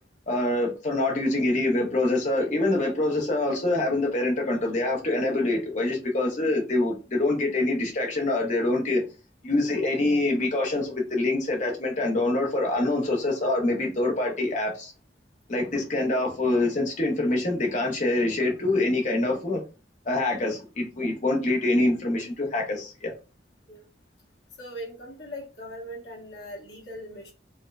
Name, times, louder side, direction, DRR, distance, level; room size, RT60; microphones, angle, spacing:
voice 1, 0.3-9.0 9.4-14.9 15.5-19.6 20.1-23.1, left 2 dB, 40° left, 0.8 m, -25 dB
voice 2, 24.6-27.3, equal, 60° left, 1.3 m, -40 dB
4.3 x 2.1 x 2.3 m
head